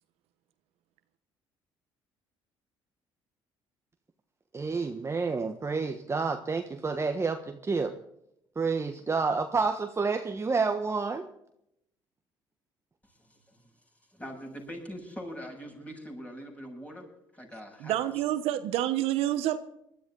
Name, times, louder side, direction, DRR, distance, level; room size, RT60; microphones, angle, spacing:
voice 1, 4.5-7.9 8.6-11.2, right 4 dB, 25° right, 6 dB, 1.3 m, -29 dB
voice 2, 13.2-13.6 14.1-17.0 17.3-18.0, equal, 15° left, 1 dB, 7.7 m, -42 dB
voice 3, 17.8-19.6, right 13 dB, 80° right, 11 dB, 1.1 m, -28 dB
20.5 x 13.0 x 3.9 m, 0.77 s
supercardioid pair, 75°, 10 cm